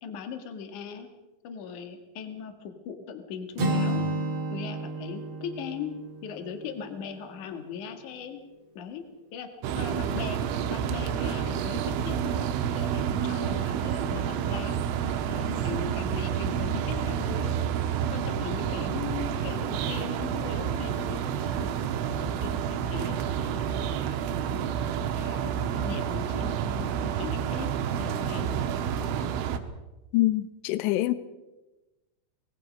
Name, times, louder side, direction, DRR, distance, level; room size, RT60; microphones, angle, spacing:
voice 1, 0.0-1.1 1.4-4.0 4.5-5.9 6.2-8.4 8.7-9.0 9.3-9.5 9.8-12.5 12.8-14.8 15.3-17.6 18.1-24.2 24.8-24.9 25.2-27.7 27.9-28.9, left 7 dB, 50° left, 2.7 m, -39 dB
Acoustic guitar, 3.6-7.5, right 1 dB, 40° right, 2.2 m, -31 dB
sound 1, 9.6-29.6, right 8 dB, 85° right, 3.6 m, -29 dB
voice 2, 30.1-31.1, left 16 dB, 75° left, 2.9 m, -25 dB
25.0 x 19.5 x 5.4 m
omnidirectional pair, 5.6 m